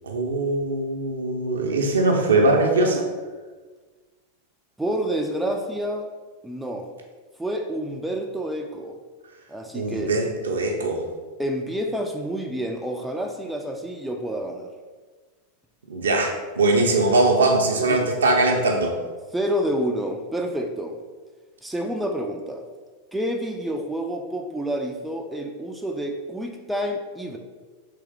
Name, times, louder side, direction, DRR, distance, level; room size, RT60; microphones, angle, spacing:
voice 1, 0.0-3.1 9.7-11.1 15.9-19.0, right 2 dB, 70° right, 1 dB, 0.6 m, -21 dB
voice 2, 4.8-6.1 6.4-6.9 7.4-9.0 9.5-10.1 11.4-14.7 17.9-18.0 19.3-21.0 21.6-22.6 23.1-27.4, equal, 5° right, 3 dB, 0.3 m, -28 dB
3.4 x 3.1 x 3.4 m, 1.4 s
figure-of-eight pair, 90°, 0 cm